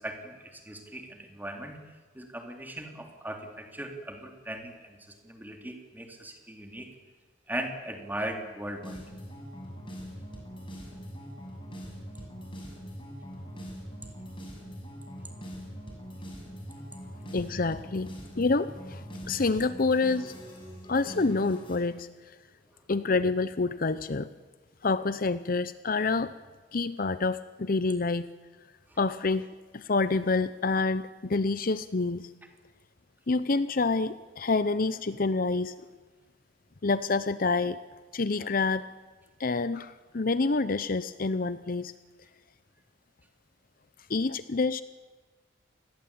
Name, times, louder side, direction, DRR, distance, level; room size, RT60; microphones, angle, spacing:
voice 1, 0.0-1.8 2.2-5.0 5.2-6.9 7.5-9.0, right 1 dB, 10° right, 3 dB, 3.4 m, -38 dB
sound 1, 8.8-21.8, equal, 30° left, 7.2 m, -42 dB
voice 2, 17.3-18.1 18.4-20.3 20.9-22.1 22.9-24.3 24.8-26.3 26.7-28.3 29.0-29.5 29.7-32.3 33.3-35.7 36.8-37.8 38.1-38.9 39.4-41.9 44.1-44.8, left 3 dB, 50° left, 14 dB, 0.7 m, -27 dB
28.0 x 20.5 x 8.7 m, 1.4 s
head